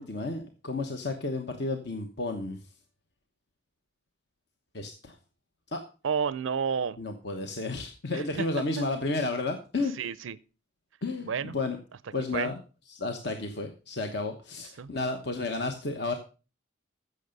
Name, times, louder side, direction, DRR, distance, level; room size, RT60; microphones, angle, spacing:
voice 1, 0.0-2.6 4.7-5.2 5.7-5.8 7.0-9.9 11.0-11.8 12.1-12.6 12.9-16.1, left 2 dB, 55° left, 1.1 m, -32 dB
voice 2, 6.0-7.0 8.1-8.5 8.8-8.9 9.9-10.4 11.3-11.5 12.3-12.5 14.8-14.9, right 6 dB, 75° right, 0.5 m, -30 dB
14.5 x 6.7 x 5.3 m
head